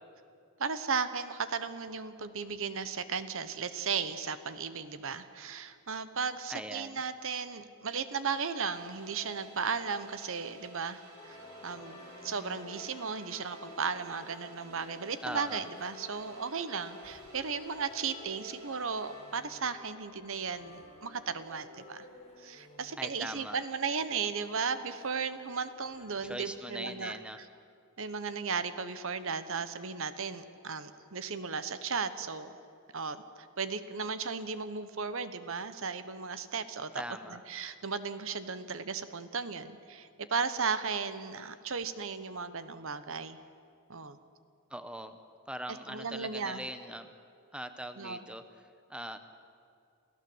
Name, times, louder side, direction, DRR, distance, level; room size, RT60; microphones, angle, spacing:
voice 1, 0.6-11.4 11.6-22.1 22.4-27.1 28.0-32.5 32.9-33.2 33.6-36.9 37.5-43.4 43.9-44.2 45.9-46.6 48.0-48.2, right 5 dB, 65° right, 12 dB, 1.1 m, -35 dB
voice 2, 6.5-7.0 15.2-15.7 23.0-23.6 26.2-27.4 36.9-37.4 44.7-45.2 45.5-47.1 47.5-49.2, right 1 dB, 5° right, 9 dB, 0.9 m, -41 dB
sound 1, 8.1-20.0, right 2 dB, 80° right, 4.0 m, -53 dB
sound 2, 11.2-26.3, left 2 dB, 30° left, 4.7 m, -53 dB
28.0 x 16.0 x 7.9 m, 2.4 s
head